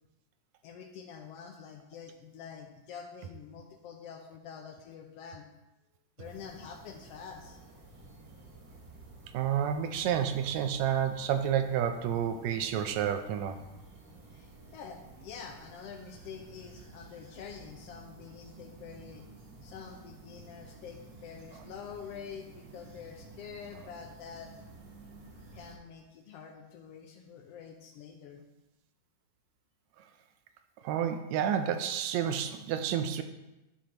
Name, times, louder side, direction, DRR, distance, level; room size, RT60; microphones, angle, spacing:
voice 1, 0.6-5.5 6.2-7.6 14.3-19.3 19.6-24.5 25.5-28.5, left 7 dB, 75° left, 3 dB, 1.4 m, -47 dB
sound 1, 6.2-25.8, right 3 dB, 45° right, 1.8 m, -52 dB
voice 2, 9.3-13.6 30.8-33.2, right 9 dB, 75° right, 8 dB, 1.7 m, -30 dB
11.5 x 4.4 x 5.1 m, 0.98 s
omnidirectional pair, 3.6 m